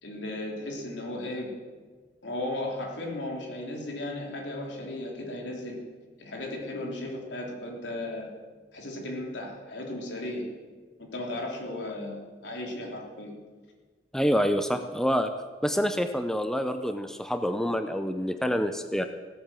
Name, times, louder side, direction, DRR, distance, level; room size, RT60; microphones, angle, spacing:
voice 1, 0.0-1.5 2.2-5.8 6.2-8.3 8.7-10.5 11.1-13.3, left 1 dB, 75° left, -1 dB, 3.5 m, -35 dB
voice 2, 14.1-15.3 15.6-19.1, equal, 5° left, 8 dB, 0.5 m, -27 dB
17.0 x 8.6 x 7.5 m, 1.4 s
head